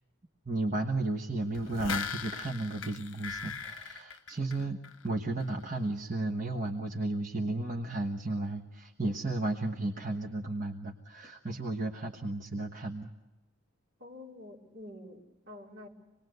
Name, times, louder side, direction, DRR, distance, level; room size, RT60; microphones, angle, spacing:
voice 1, 0.4-13.1, right 2 dB, 40° right, 2 dB, 1.3 m, -34 dB
sound 1, 1.5-5.1 5.4-5.5, left 6 dB, 70° left, 1.0 m, -39 dB
voice 2, 14.0-15.9, left 1 dB, 55° right, -1 dB, 3.6 m, -48 dB
26.0 x 20.5 x 8.1 m, 1.1 s
head